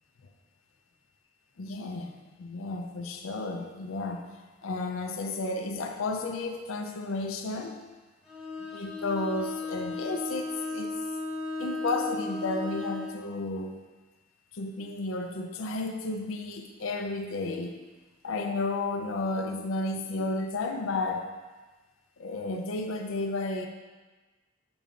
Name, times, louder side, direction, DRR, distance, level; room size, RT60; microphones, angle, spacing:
voice 1, 1.6-4.3 4.6-7.8 8.6-10.9 11.6-13.8 14.5-17.8 18.2-21.3 22.2-23.7, left 2 dB, 85° left, 4 dB, 0.5 m, -32 dB
Bowed string instrument, 8.2-13.2, left 3 dB, 5° right, 1.7 m, -35 dB
6.9 x 6.8 x 2.5 m, 1.3 s
head